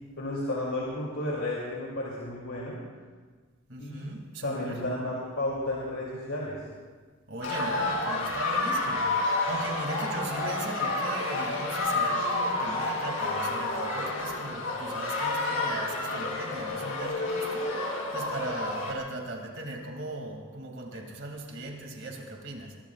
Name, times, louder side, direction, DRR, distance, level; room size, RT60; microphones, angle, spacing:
voice 1, 0.2-2.8 3.8-4.1 4.4-6.6, left 1 dB, 70° left, -5 dB, 2.9 m, -32 dB
voice 2, 3.7-4.8 7.3-22.7, right 2 dB, 55° right, 1 dB, 2.6 m, -38 dB
sound 1, 7.4-18.9, left 2 dB, 85° left, 3.1 m, -30 dB
22.5 x 21.5 x 2.5 m, 1.5 s
head